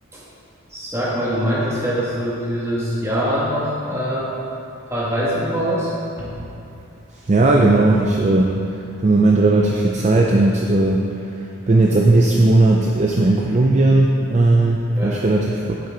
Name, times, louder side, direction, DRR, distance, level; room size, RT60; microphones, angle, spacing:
voice 1, 0.7-4.3 4.8-5.9 6.2-6.3 14.9-15.2, equal, 15° right, -7 dB, 1.7 m, -23 dB
voice 2, 7.1-15.8, right 2 dB, 30° right, 0 dB, 0.4 m, -17 dB
9.5 x 7.4 x 3.8 m, 2.7 s
head